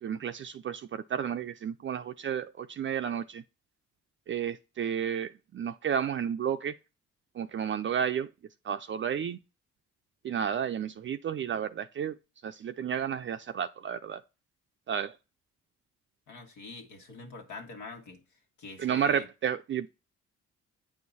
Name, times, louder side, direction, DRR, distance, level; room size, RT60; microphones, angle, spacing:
voice 1, 0.0-3.4 4.3-6.7 7.4-8.3 8.6-9.4 10.2-12.2 12.4-14.2 14.9-15.2 18.8-19.9, right 8 dB, 40° right, 0.4 m, -32 dB
voice 2, 16.3-18.2 18.6-19.3, left 3 dB, 85° left, 1.8 m, -44 dB
9.0 x 4.7 x 4.1 m
cardioid pair, 90°, 30 cm